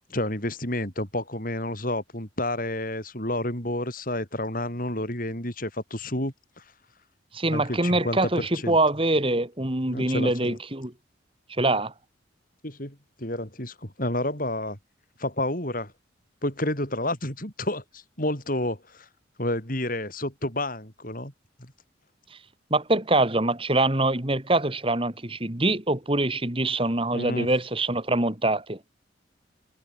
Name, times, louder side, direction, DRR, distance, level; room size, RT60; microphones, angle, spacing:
voice 1, 0.1-6.6 7.5-8.8 9.9-10.6 12.6-14.8 15.2-15.9 16.4-19.1 19.4-21.3 21.6-21.7 27.1-27.5, left 1 dB, 45° left, 6.9 m, -30 dB
voice 2, 7.3-10.9 11.6-11.9 22.7-28.8, right 2 dB, 30° right, 2.3 m, -24 dB
head